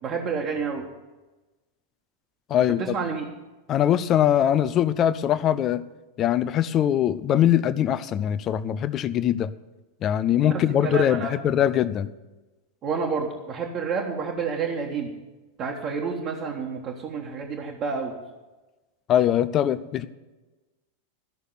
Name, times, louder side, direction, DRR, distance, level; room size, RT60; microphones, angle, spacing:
voice 1, 0.0-0.8 2.8-3.3 10.5-11.3 12.8-15.1 15.6-18.1, right 5 dB, 30° right, -1 dB, 1.6 m, -29 dB
voice 2, 2.5-2.8 3.7-5.8 6.2-9.5 10.0-12.1 19.1-20.1, left 10 dB, 30° left, 14 dB, 0.6 m, -22 dB
13.5 x 6.5 x 9.3 m, 1.1 s
figure-of-eight pair, 90°, 0 cm